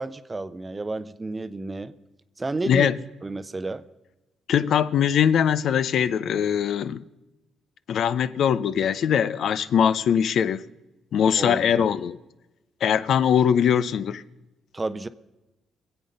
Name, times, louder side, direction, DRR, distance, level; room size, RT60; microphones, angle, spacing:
voice 1, 0.0-1.9 2.4-2.9 3.2-3.8 11.4-11.9 14.7-15.1, right 2 dB, 20° right, 0.7 m, -31 dB
voice 2, 2.6-3.0 4.5-7.0 7.9-10.6 11.1-12.2 12.8-14.2, left 8 dB, 65° left, 0.5 m, -21 dB
23.0 x 8.0 x 5.3 m
cardioid pair, 90°, 0 cm